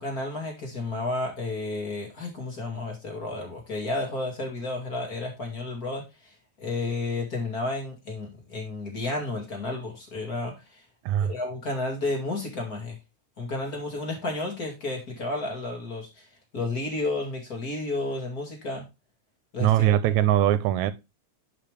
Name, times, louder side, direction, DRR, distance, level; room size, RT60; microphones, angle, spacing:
voice 1, 0.0-10.8 11.2-13.0 13.4-16.3 16.5-18.8 19.5-19.8, left 2 dB, 35° left, 2.5 m, -32 dB
voice 2, 19.6-20.9, right 12 dB, 85° right, 2.0 m, -21 dB
10.0 x 5.3 x 3.3 m
omnidirectional pair, 3.3 m